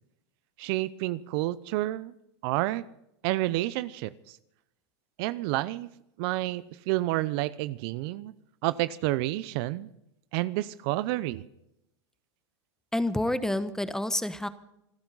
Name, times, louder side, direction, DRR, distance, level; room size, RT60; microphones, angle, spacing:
voice 1, 0.6-2.1 2.4-2.8 3.2-4.4 5.2-5.9 6.2-8.3 8.6-9.9 10.3-11.5, right 17 dB, 55° right, 17 dB, 0.7 m, -29 dB
voice 2, 12.9-14.5, left 1 dB, 5° left, 12 dB, 1.1 m, -28 dB
28.0 x 10.5 x 4.0 m, 0.82 s
hypercardioid pair, 110°, 15 cm